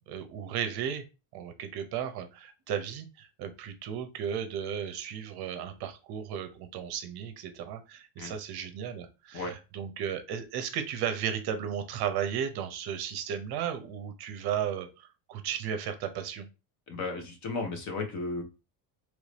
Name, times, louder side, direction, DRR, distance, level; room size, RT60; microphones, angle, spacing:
voice 1, 0.1-1.0 1.3-16.5, right 8 dB, 55° right, 8 dB, 0.6 m, -35 dB
voice 2, 16.9-18.4, left 3 dB, 40° left, 4 dB, 0.8 m, -34 dB
3.1 x 2.6 x 3.2 m, 0.29 s
cardioid pair, 170°, 46 cm